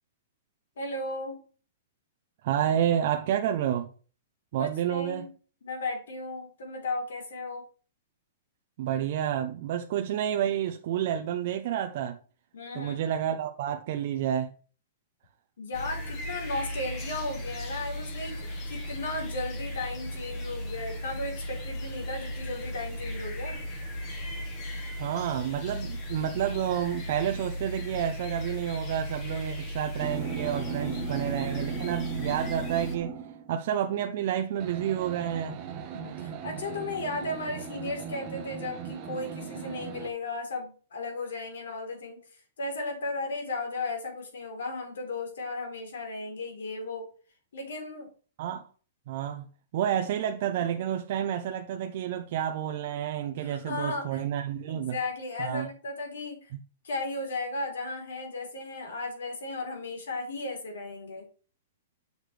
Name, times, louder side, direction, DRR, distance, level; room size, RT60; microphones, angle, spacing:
voice 1, 0.8-1.4 4.6-5.3 5.6-7.6 12.5-13.1 15.6-23.6 30.7-31.7 35.9-42.2 42.6-47.1 47.5-48.1 53.3-54.2 54.7-56.4 56.8-61.2, left 2 dB, 90° left, 3.8 m, -35 dB
voice 2, 2.4-3.9 4.5-5.3 8.8-12.2 12.7-14.5 25.0-33.1 33.5-35.6 48.4-48.7 49.1-49.5 49.7-55.0 55.4-55.7 56.5-56.6, right 10 dB, 45° right, 0.6 m, -29 dB
sound 1, 15.7-33.0, equal, 20° left, 1.5 m, -36 dB
sound 2, 30.0-33.5 34.6-40.1, right 7 dB, 25° right, 1.1 m, -38 dB
7.9 x 6.5 x 3.4 m
hypercardioid pair, 170°, 0 cm